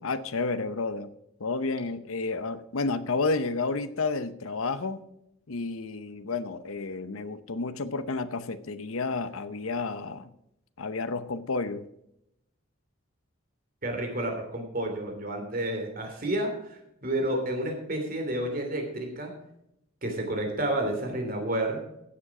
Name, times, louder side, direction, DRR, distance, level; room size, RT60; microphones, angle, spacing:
voice 1, 0.0-1.1 1.4-5.1 5.5-10.3 10.8-11.8, left 3 dB, 80° left, 12 dB, 0.8 m, -31 dB
voice 2, 13.8-19.3 20.0-21.8, right 1 dB, 40° right, 4 dB, 2.9 m, -30 dB
15.5 x 7.5 x 4.8 m, 0.81 s
head